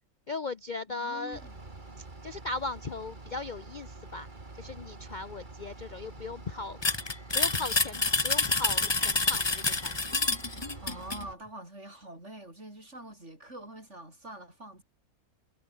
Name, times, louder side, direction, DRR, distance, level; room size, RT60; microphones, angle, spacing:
voice 1, 0.3-1.4 2.2-4.3 4.6-7.0 7.3-9.9, left 3 dB, 40° left, 0.8 m, -37 dB
voice 2, 1.0-1.6 10.8-14.8, right 1 dB, 50° right, 8.2 m, -45 dB
Bus / Idling, 1.3-11.3, right 3 dB, 30° right, 2.7 m, -47 dB
sound 1, 6.8-11.2, left 3 dB, 20° left, 1.1 m, -28 dB
omnidirectional pair, 1.6 m